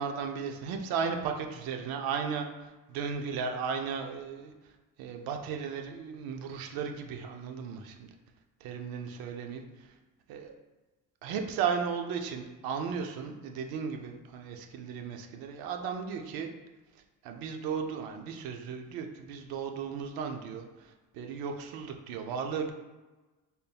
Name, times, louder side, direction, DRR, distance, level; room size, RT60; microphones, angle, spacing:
voice 1, 0.0-2.5 2.9-4.5 5.0-8.1 8.6-9.6 10.3-10.5 11.2-16.5 17.2-22.7, right 6 dB, 85° right, 4 dB, 0.5 m, -35 dB
4.1 x 3.5 x 2.2 m, 1.2 s
cardioid pair, 135°, 35 cm